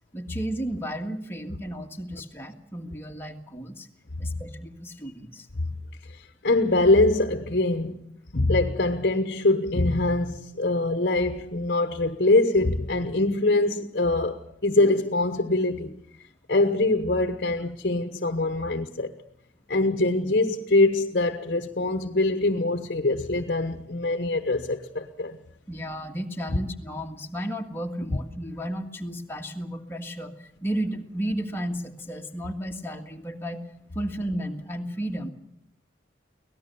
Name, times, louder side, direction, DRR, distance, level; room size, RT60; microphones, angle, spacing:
voice 1, 0.1-3.9 4.2-5.5 25.7-33.6 33.9-35.3, right 1 dB, 10° left, 1.7 m, -33 dB
voice 2, 6.1-8.0 8.3-16.0 16.5-19.1 19.7-25.4, left 2 dB, 50° left, 1.1 m, -23 dB
24.5 x 18.5 x 6.8 m
head